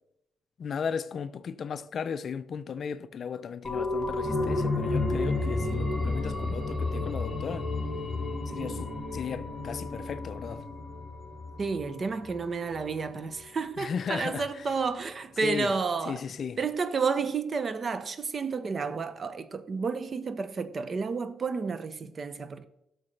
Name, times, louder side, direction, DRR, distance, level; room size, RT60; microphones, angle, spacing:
voice 1, 0.6-7.7 8.5-10.7 13.8-14.7 15.4-15.7 16.1-16.6, left 6 dB, 55° left, 0.4 m, -35 dB
sound 1, 3.6-13.0 13.4-13.5, left 2 dB, 5° left, 1.8 m, -32 dB
voice 2, 11.6-16.2 16.6-22.7, right 5 dB, 40° right, 0.6 m, -31 dB
12.0 x 6.4 x 3.3 m
cardioid pair, 90°, 0 cm